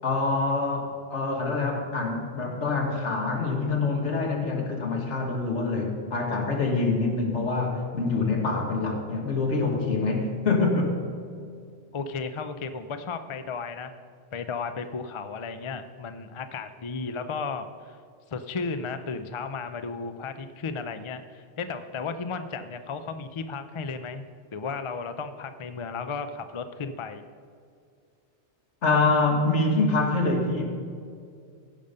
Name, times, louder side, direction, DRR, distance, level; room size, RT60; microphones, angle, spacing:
voice 1, 0.0-11.0 28.8-30.7, left 3 dB, 75° left, 1 dB, 1.8 m, -25 dB
voice 2, 11.9-13.9 14.3-18.0 18.3-24.2 24.5-27.2, left 4 dB, 45° left, 9 dB, 0.4 m, -34 dB
15.5 x 5.2 x 5.4 m, 2.3 s
omnidirectional pair, 1.2 m